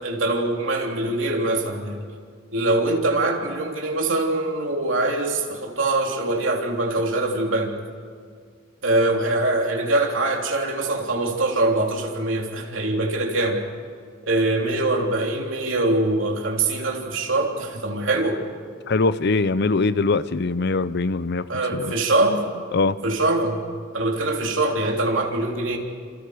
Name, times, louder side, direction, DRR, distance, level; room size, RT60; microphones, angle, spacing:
voice 1, 0.0-2.1 2.5-7.8 8.8-13.6 14.3-18.4 19.7-19.8 21.5-22.4 23.0-23.6 23.9-25.8, right 2 dB, 65° right, 1 dB, 3.4 m, -23 dB
voice 2, 18.9-21.5 21.7-21.9 22.7-23.0, left 3 dB, 55° left, 15 dB, 0.7 m, -22 dB
28.5 x 28.0 x 5.1 m, 2.1 s
head